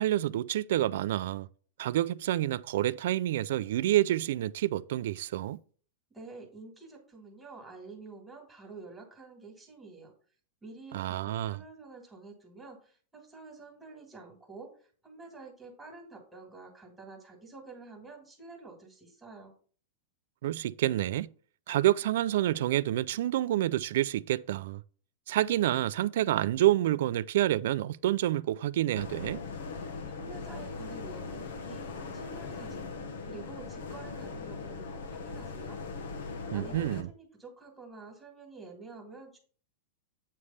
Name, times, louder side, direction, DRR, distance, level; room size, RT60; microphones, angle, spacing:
voice 1, 0.0-1.5 1.8-5.6 10.9-11.6 20.4-21.3 21.7-24.8 25.3-29.4 36.5-37.1, right 14 dB, 65° right, 0.3 m, -28 dB
voice 2, 6.1-10.1 10.6-14.7 15.0-19.5 30.1-31.8 32.1-32.9 33.2-36.0 36.5-39.4, right 3 dB, 5° right, 1.8 m, -49 dB
sound 1, 29.0-37.0, left 4 dB, 80° left, 1.1 m, -40 dB
8.3 x 3.3 x 5.5 m
supercardioid pair, 165°, 0 cm